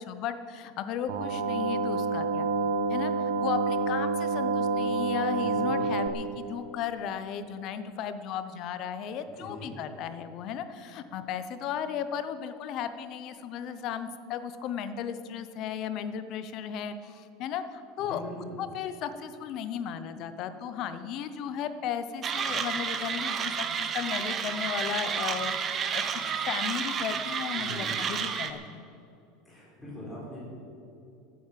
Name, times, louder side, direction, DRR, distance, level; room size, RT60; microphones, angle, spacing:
voice 1, 0.1-2.5 2.9-18.2 18.6-28.8, left 8 dB, 35° left, 11 dB, 0.7 m, -35 dB
sound 1, 1.1-6.1, right 4 dB, 80° right, 1.3 m, -28 dB
voice 2, 5.4-5.8 9.3-9.7 18.0-18.6 27.5-27.9 29.4-30.4, left 1 dB, 5° left, -7 dB, 4.4 m, -42 dB
Mechanisms, 22.2-28.5, right 7 dB, 20° right, 0.7 m, -31 dB
15.0 x 9.4 x 7.5 m, 2.7 s
supercardioid pair, 180°, 0 cm